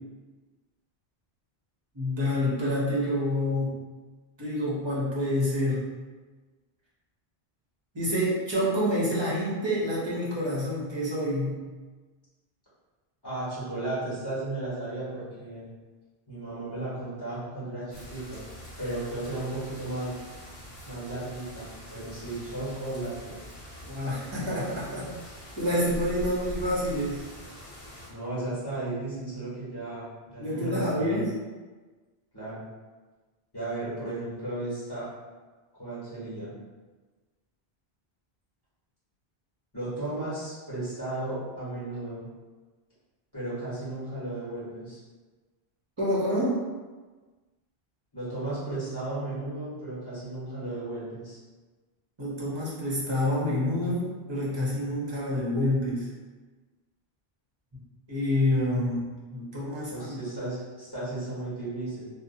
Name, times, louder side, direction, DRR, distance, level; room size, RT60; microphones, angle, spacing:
voice 1, 1.9-3.7 4.4-5.8 7.9-11.6 23.9-25.1 25.6-27.2 30.4-31.3 46.0-46.6 52.2-56.1 57.7-57.8 58.1-60.2, left 1 dB, 30° right, -6 dB, 0.7 m, -27 dB
voice 2, 13.2-15.7 16.3-18.4 18.8-20.2 20.8-23.4 28.1-31.2 32.3-32.6 33.5-35.1 35.8-36.5 39.7-42.3 43.3-45.0 48.1-51.4 59.9-62.1, right 2 dB, 25° left, -12 dB, 1.4 m, -34 dB
sound 1, 17.9-28.1, equal, 70° left, 1.0 m, -43 dB
2.7 x 2.2 x 2.6 m, 1.3 s
omnidirectional pair, 1.0 m